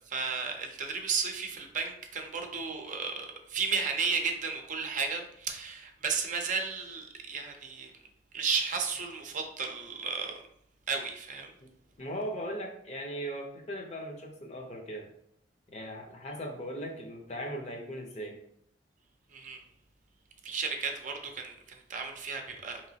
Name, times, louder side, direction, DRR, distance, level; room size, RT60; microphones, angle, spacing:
voice 1, 0.1-7.9 8.3-10.4 10.9-11.5 19.3-19.6 20.4-22.8, right 5 dB, 45° right, 4 dB, 0.6 m, -33 dB
voice 2, 12.0-15.1 15.7-18.4, equal, 40° left, 2 dB, 0.7 m, -38 dB
4.6 x 3.0 x 2.8 m, 0.69 s
head